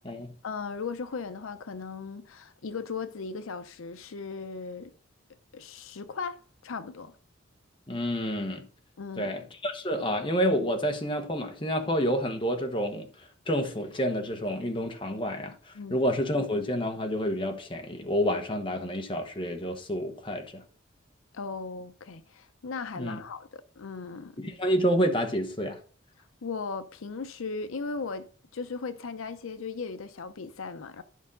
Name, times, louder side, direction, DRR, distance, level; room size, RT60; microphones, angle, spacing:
voice 1, 0.4-4.9 5.5-7.1 9.0-9.3 15.7-16.0 21.3-24.4 26.4-31.0, left 4 dB, 80° left, 0.6 m, -37 dB
voice 2, 7.9-8.7 9.2-20.6 23.0-23.2 24.4-25.8, equal, 25° left, 1.1 m, -29 dB
11.0 x 5.4 x 3.8 m
head